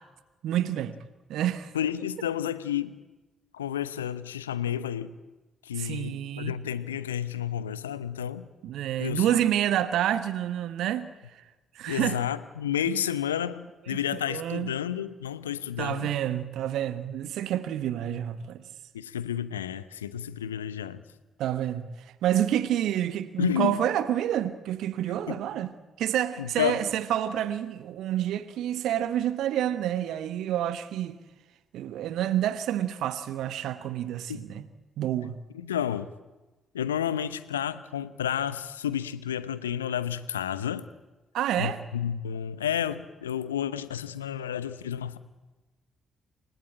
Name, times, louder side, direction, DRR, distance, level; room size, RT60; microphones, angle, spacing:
voice 1, 0.4-1.0 1.3-1.7 5.8-6.6 8.6-11.4 11.7-12.2 12.9-13.0 13.9-14.7 15.8-18.7 21.4-25.7 26.0-31.2 31.7-34.7 35.0-35.4 41.3-41.8, right 11 dB, 60° right, 1.1 m, -28 dB
voice 2, 1.7-3.0 3.5-5.1 5.6-8.5 9.0-9.4 11.9-16.1 18.9-21.0 23.4-23.8 25.3-25.4 26.4-26.8 34.3-34.4 35.5-36.1 36.7-40.9 41.6-45.2, left 9 dB, 80° left, 0.8 m, -31 dB
28.5 x 17.0 x 8.9 m
figure-of-eight pair, 40°, 0 cm